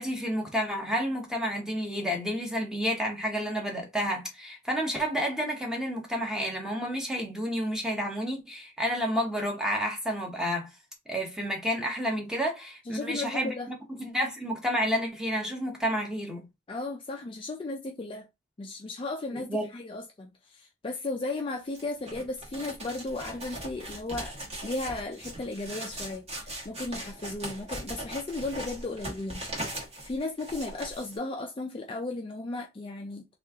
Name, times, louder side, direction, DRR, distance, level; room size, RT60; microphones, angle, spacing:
voice 1, 0.0-10.7 11.1-16.5 19.5-19.7, equal, 5° right, 0.8 m, -30 dB
voice 2, 12.8-13.7 16.7-18.3 18.6-24.3 24.6-29.4 29.7-33.3, left 2 dB, 25° left, 0.4 m, -35 dB
sound 1, 21.7-31.2, right 1 dB, 30° right, 1.2 m, -39 dB
3.0 x 2.4 x 3.4 m
head